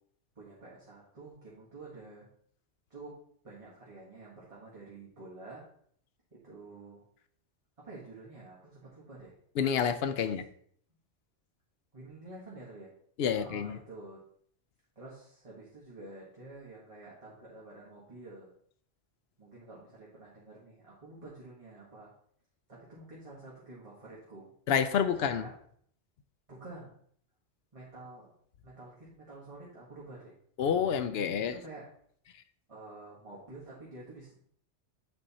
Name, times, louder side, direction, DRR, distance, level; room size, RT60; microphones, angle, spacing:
voice 1, 0.3-2.3 2.9-3.1 3.4-5.6 6.4-7.0 7.8-9.3 11.9-12.9 13.3-14.2 14.9-18.5 19.4-22.1 22.7-24.5 25.1-25.5 26.5-27.0 27.7-28.3 28.6-30.3 31.1-31.9 32.7-34.3, right 2 dB, 30° right, -7 dB, 1.6 m, -49 dB
voice 2, 9.6-10.4 13.2-13.8 24.7-25.4 30.6-31.5, left 7 dB, 65° left, 12 dB, 0.8 m, -28 dB
8.0 x 4.3 x 4.2 m, 0.62 s
omnidirectional pair, 1.2 m